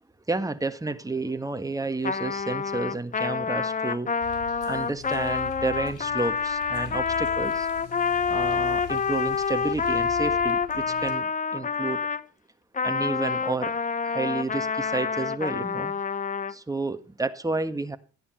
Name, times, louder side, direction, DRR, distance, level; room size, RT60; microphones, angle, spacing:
voice 1, 0.3-4.1 4.6-7.7 8.3-12.0 12.8-13.7 14.0-16.0 16.5-18.0, right 3 dB, 10° right, 1.5 m, -31 dB
Trumpet, 2.0-12.2 12.7-16.5, left 5 dB, 25° left, 0.8 m, -27 dB
sound 1, 4.2-11.1, left 6 dB, 85° left, 3.8 m, -43 dB
13.5 x 10.0 x 5.6 m
cardioid pair, 90°, 30 cm